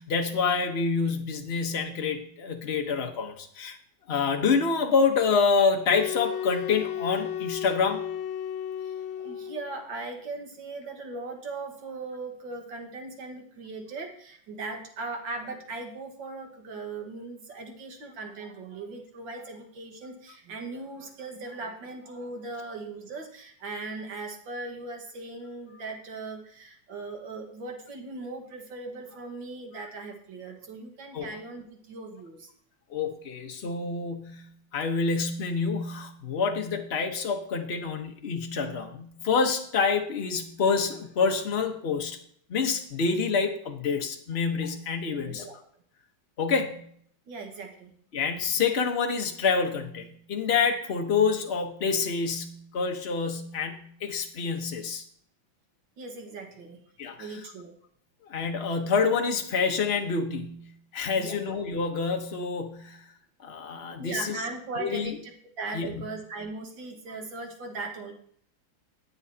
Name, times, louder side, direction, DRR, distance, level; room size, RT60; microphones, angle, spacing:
voice 1, 0.0-3.8 4.1-8.0 31.1-31.3 32.9-42.2 42.5-45.5 46.4-46.8 48.1-55.0 57.0-57.2 58.3-63.0 63.4-64.4 64.8-65.2 65.7-66.0, left 5 dB, 35° left, 3 dB, 1.1 m, -27 dB
sound 1, 5.9-9.8, left 9 dB, 85° left, 1.4 m, -34 dB
voice 2, 8.8-32.5 45.2-45.6 47.3-47.9 56.0-56.8 57.2-57.7 61.2-61.4 64.0-68.1, right 3 dB, 65° right, 2 dB, 2.3 m, -39 dB
19.5 x 7.1 x 2.9 m, 0.63 s
omnidirectional pair, 2.2 m